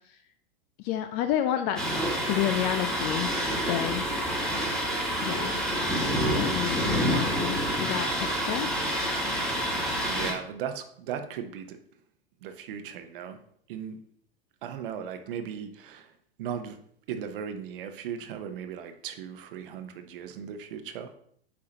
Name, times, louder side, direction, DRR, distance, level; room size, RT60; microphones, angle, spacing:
voice 1, 0.8-1.8 2.2-3.3 3.7-4.1 5.2-5.6 6.3-8.7, left 11 dB, 30° left, 8 dB, 0.4 m, -30 dB
Thunder, 1.8-10.3, equal, ahead, 1.4 m, -28 dB
voice 2, 10.0-11.8 12.4-13.4 13.7-14.0 14.6-16.1 16.4-16.8 17.1-21.1, right 8 dB, 55° right, 8 dB, 0.9 m, -37 dB
8.5 x 4.8 x 2.9 m, 0.63 s
figure-of-eight pair, 95°, 31 cm